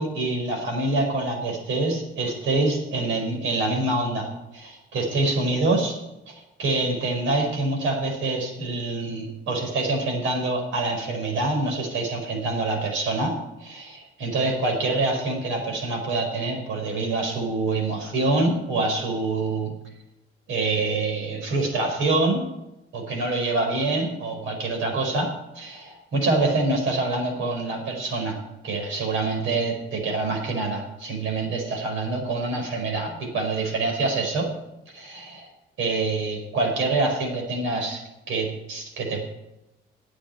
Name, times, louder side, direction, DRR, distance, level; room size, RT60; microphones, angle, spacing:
voice 1, 0.0-6.0 6.3-19.7 20.5-22.5 22.9-28.4 28.6-34.5 34.9-35.5 35.8-38.0 38.3-39.2, right 2 dB, 80° right, 2 dB, 4.8 m, -26 dB
10.5 x 8.5 x 9.0 m, 0.93 s
cardioid pair, 90°, 20 cm